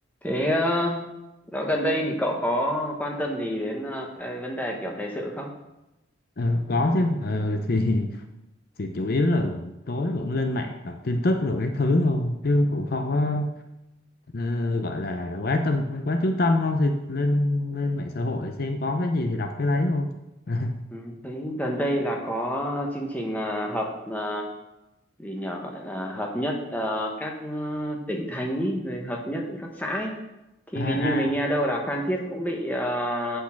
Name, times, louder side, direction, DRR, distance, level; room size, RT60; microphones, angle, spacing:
voice 1, 0.2-1.1 1.5-5.5 13.1-13.2 20.9-24.5 25.2-30.2 30.7-33.4, equal, 10° left, 0 dB, 1.2 m, -28 dB
voice 2, 6.4-8.2 8.8-13.5 14.3-20.1 20.5-20.8 30.7-31.4, left 2 dB, 50° left, 6 dB, 0.6 m, -25 dB
8.3 x 6.3 x 5.9 m, 0.94 s
head